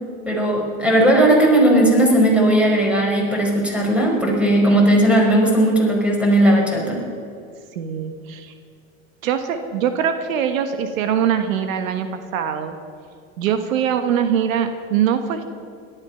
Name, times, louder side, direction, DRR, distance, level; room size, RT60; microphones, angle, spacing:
voice 1, 0.2-7.0, right 1 dB, 5° right, -1 dB, 5.1 m, -16 dB
voice 2, 7.7-8.5 9.2-12.1 12.3-12.8 13.4-15.4, right 8 dB, 80° right, 8 dB, 1.4 m, -22 dB
17.5 x 13.0 x 5.7 m, 2.4 s
hypercardioid pair, 100°, 40 cm